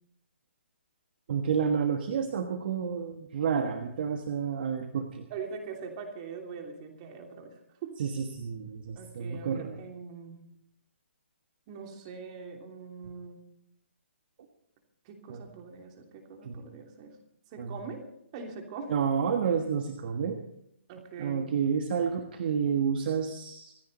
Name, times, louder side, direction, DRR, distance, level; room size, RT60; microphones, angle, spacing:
voice 1, 1.3-5.3 8.0-9.8 15.3-15.4 16.4-16.6 17.6-17.8 18.9-20.4 21.2-23.8, right 7 dB, 50° right, 6 dB, 1.4 m, -30 dB
voice 2, 5.3-7.5 7.8-8.0 8.9-10.4 11.7-13.4 15.0-17.2 17.5-18.0 18.3-18.9 20.9-21.5, right 5 dB, 30° right, 3 dB, 2.9 m, -42 dB
25.5 x 9.7 x 4.2 m, 0.75 s
hypercardioid pair, 150°, 7 cm